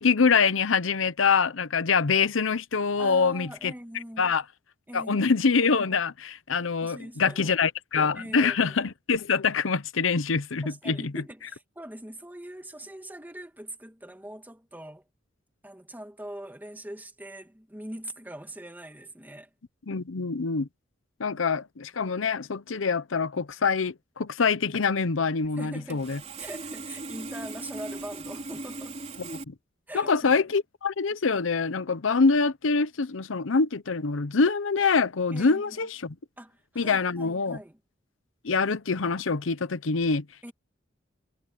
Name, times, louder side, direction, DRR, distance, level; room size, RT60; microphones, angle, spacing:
voice 1, 0.0-3.7 4.2-4.4 4.9-11.2 19.9-20.7 21.2-26.2 29.5-29.6 29.9-36.1 36.8-37.6 38.4-40.2, left 5 dB, 90° left, 0.8 m, -25 dB
voice 2, 3.0-4.3 4.9-5.3 6.8-7.6 8.2-8.6 10.6-15.0 15.6-19.5 25.6-26.1 26.4-29.0 29.9-30.3 35.3-35.8 36.4-37.8 40.4-40.5, right 1 dB, 10° right, 2.1 m, -42 dB
Sawing, 25.9-29.4, right 2 dB, 35° right, 4.2 m, -39 dB
head